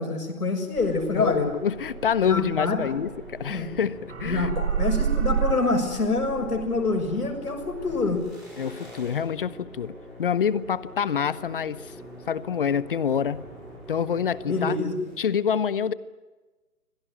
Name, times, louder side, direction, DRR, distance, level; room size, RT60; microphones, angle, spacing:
voice 1, 0.0-1.4 2.3-2.9 3.5-3.7 4.3-8.3 14.5-15.0, left 3 dB, 80° left, 5 dB, 6.5 m, -26 dB
sound 1, 0.7-15.3, left 1 dB, ahead, 5.7 m, -44 dB
sound 2, 0.8-3.8 4.1-8.3, right 8 dB, 45° right, 1.5 m, -31 dB
voice 2, 1.1-4.6 8.6-9.9 10.2-11.9 12.3-13.4 13.9-14.8 15.2-15.9, left 7 dB, 35° left, 18 dB, 0.8 m, -26 dB
25.5 x 17.0 x 9.9 m, 1.2 s
hypercardioid pair, 150°, 45 cm